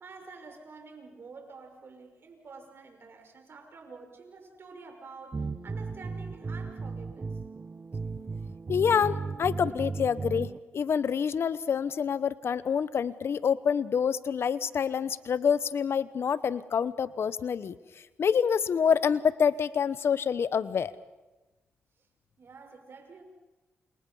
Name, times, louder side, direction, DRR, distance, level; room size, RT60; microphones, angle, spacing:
voice 1, 0.0-7.4 22.4-23.2, right 4 dB, 60° right, 4 dB, 5.7 m, -48 dB
sound 1, 5.3-10.6, right 4 dB, 40° right, 1.1 m, -36 dB
voice 2, 8.7-17.8 18.2-20.9, left 7 dB, 65° left, 16 dB, 1.0 m, -27 dB
29.5 x 27.5 x 5.6 m, 1.1 s
supercardioid pair, 55°, 5 cm